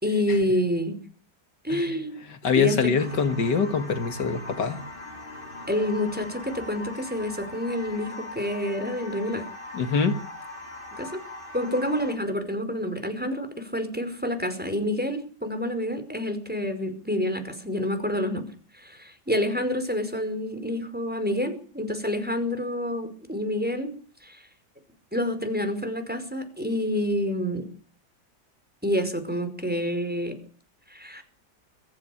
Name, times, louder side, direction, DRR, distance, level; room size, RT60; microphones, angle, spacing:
voice 1, 0.0-1.0 1.6-2.2 2.5-2.9 5.7-9.4 10.9-11.2 11.5-18.5 18.7-23.9 24.2-24.4 25.1-27.7 28.8-30.3 30.9-31.2, left 1 dB, 5° right, 5.0 m, -28 dB
voice 2, 2.3-4.8 9.7-10.2, left 5 dB, 85° left, 2.5 m, -24 dB
sound 1, 3.0-12.2, left 2 dB, 30° left, 4.6 m, -40 dB
23.0 x 14.5 x 8.6 m
omnidirectional pair, 1.8 m